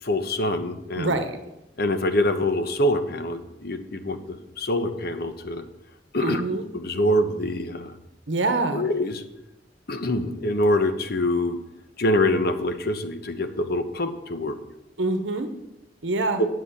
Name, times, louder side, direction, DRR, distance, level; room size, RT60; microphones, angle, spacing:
voice 1, 0.0-1.1 1.8-5.6 6.1-6.4 6.7-8.0 8.7-9.2 9.9-11.6 12.0-14.6 16.4-16.5, left 1 dB, 55° left, 8 dB, 1.0 m, -25 dB
voice 2, 1.0-1.4 6.2-6.6 8.3-8.8 15.0-15.5 16.0-16.4, right 2 dB, 75° right, 8 dB, 1.0 m, -25 dB
7.9 x 7.7 x 8.4 m, 0.91 s
head